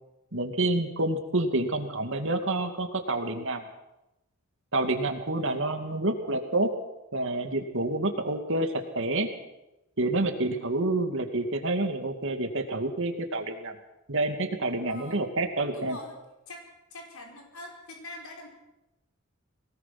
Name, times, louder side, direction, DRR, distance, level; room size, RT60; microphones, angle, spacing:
voice 1, 0.3-3.6 4.7-6.7 7.1-9.3 10.0-13.8 14.1-16.0, right 2 dB, 65° right, 5 dB, 2.5 m, -28 dB
voice 2, 5.3-5.7 10.4-10.7 14.8-15.2 15.7-16.2 16.5-16.6 16.9-18.5, left 1 dB, 80° left, 1 dB, 4.8 m, -44 dB
22.5 x 19.0 x 6.1 m, 0.92 s
head